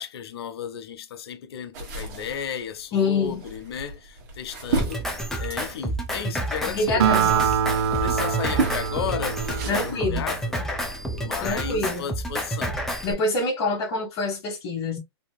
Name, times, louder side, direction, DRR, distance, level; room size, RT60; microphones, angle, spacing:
voice 1, 0.0-5.0 5.4-10.6 11.1-12.8, left 8 dB, 70° left, 0.6 m, -34 dB
sound 1, 1.7-7.0 7.4-10.0, right 3 dB, 45° right, 1.3 m, -33 dB
voice 2, 2.9-3.4 6.7-7.3 9.7-10.4 11.4-12.1 13.0-15.0, left 3 dB, 35° left, 1.2 m, -26 dB
Drum kit, 4.8-13.1, right 1 dB, 5° left, 0.6 m, -30 dB
Acoustic guitar, 7.0-10.6, right 8 dB, 80° right, 0.5 m, -25 dB
2.8 x 2.8 x 2.2 m
hypercardioid pair, 140°, 14 cm